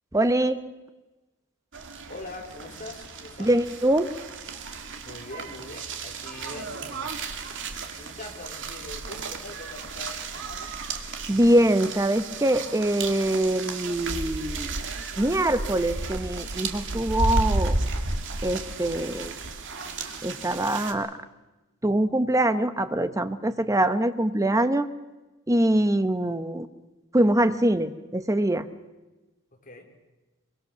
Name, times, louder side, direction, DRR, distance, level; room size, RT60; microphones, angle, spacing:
voice 1, 0.1-0.6 3.4-4.1 11.3-14.7 15.2-17.8 18.4-19.3 20.2-21.1 21.8-24.9 25.5-26.7 27.1-28.7, right 1 dB, 15° right, 11 dB, 0.9 m, -23 dB
sound 1, 1.7-20.9, right 3 dB, 60° right, 2.1 m, -33 dB
voice 2, 2.1-3.6 5.0-7.2 8.0-10.7 29.6-29.9, left 2 dB, 40° left, 1 dB, 3.7 m, -42 dB
23.5 x 23.0 x 6.8 m, 1.1 s
head